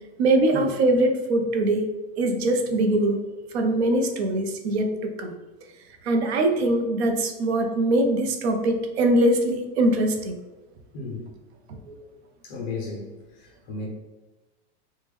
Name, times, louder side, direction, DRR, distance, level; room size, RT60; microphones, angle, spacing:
voice 1, 0.2-1.9 2.2-3.2 3.5-5.3 6.0-10.4 11.9-12.0, right 1 dB, 75° right, 5 dB, 0.6 m, -22 dB
voice 2, 12.4-13.1 13.7-13.9, left 3 dB, 20° left, -1 dB, 0.4 m, -33 dB
3.5 x 2.2 x 3.0 m, 1.2 s
supercardioid pair, 180°, 32 cm